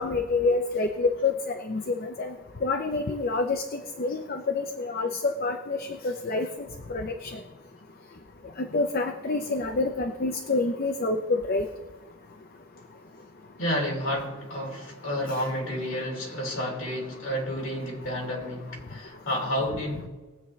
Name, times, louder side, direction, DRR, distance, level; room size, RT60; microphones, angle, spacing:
voice 1, 0.0-2.3 2.6-6.5 6.9-7.4 8.6-11.7 15.3-15.4, left 3 dB, 40° left, 0.6 m, -27 dB
voice 2, 13.6-20.1, equal, 60° left, 3.0 m, -30 dB
20.5 x 7.9 x 3.2 m
head